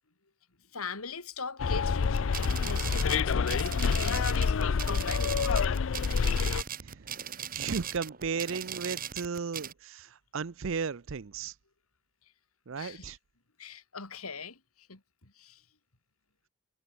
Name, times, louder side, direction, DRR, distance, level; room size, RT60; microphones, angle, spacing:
voice 1, 0.7-5.3 12.8-13.1 13.6-15.6, left 4 dB, 80° left, 3.4 m, -40 dB
Bus, 1.6-6.6, left 5 dB, 60° left, 0.4 m, -27 dB
sound 1, 2.0-9.7, right 9 dB, 40° right, 3.8 m, -39 dB
voice 2, 7.5-11.5 12.7-13.2, right 5 dB, 60° right, 0.6 m, -35 dB
head